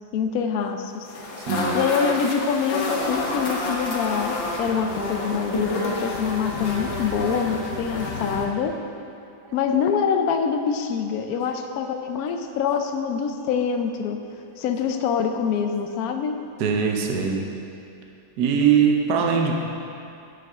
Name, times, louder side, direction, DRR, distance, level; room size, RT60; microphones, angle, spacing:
voice 1, 0.1-1.1 1.7-8.8 9.5-14.2 14.6-16.4, left 6 dB, 70° left, 5 dB, 0.9 m, -25 dB
sound 1, 1.1-8.5, left 2 dB, 85° left, 1.9 m, -29 dB
voice 2, 1.4-1.8 9.4-9.6 12.4-12.6 16.6-17.5 18.4-19.6, right 6 dB, 65° right, 1 dB, 1.3 m, -22 dB
9.2 x 8.7 x 3.5 m, 2.6 s
omnidirectional pair, 2.0 m